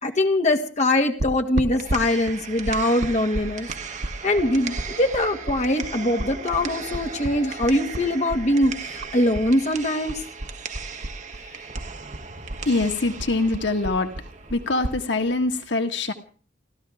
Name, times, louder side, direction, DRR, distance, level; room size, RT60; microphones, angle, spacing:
voice 1, 0.0-3.7 4.2-10.2, left 1 dB, 40° left, 5 dB, 1.8 m, -22 dB
sound 1, 1.2-9.5 9.8-11.4 11.7-15.0, right 1 dB, 75° right, 1.1 m, -32 dB
sound 2, 1.6-15.6, right 5 dB, 40° right, 1.5 m, -37 dB
voice 2, 12.6-14.1 14.5-16.1, left 2 dB, 85° left, 6 dB, 1.6 m, -24 dB
30.0 x 13.5 x 3.5 m, 0.40 s
head